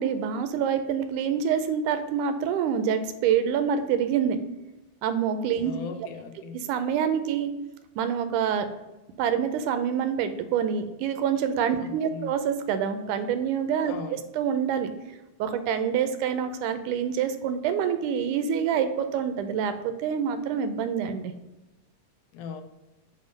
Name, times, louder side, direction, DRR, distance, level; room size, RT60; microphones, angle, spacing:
voice 1, 0.0-4.4 5.0-5.7 6.5-7.5 8.0-8.7 9.2-14.9 15.4-21.3, right 8 dB, 80° right, 9 dB, 2.0 m, -26 dB
voice 2, 5.6-6.6 11.8-12.3 13.9-14.2 22.3-22.6, left 6 dB, 85° left, 7 dB, 2.2 m, -39 dB
7.2 x 2.7 x 5.0 m, 1.0 s
omnidirectional pair, 3.6 m